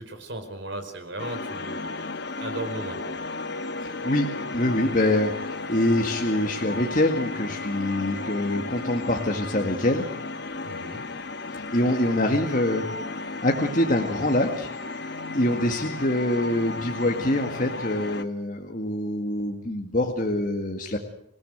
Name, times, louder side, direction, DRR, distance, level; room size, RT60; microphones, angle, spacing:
voice 1, 0.0-2.0 2.4-3.1 10.6-11.1, right 2 dB, 60° right, 7 dB, 4.7 m, -36 dB
sound 1, 1.2-18.2, left 3 dB, 55° left, 1.2 m, -34 dB
voice 2, 3.8-10.1 11.5-12.9 13.4-14.7 15.3-21.0, left 1 dB, 40° left, 1 dB, 2.1 m, -25 dB
27.0 x 17.0 x 7.9 m, 0.72 s
head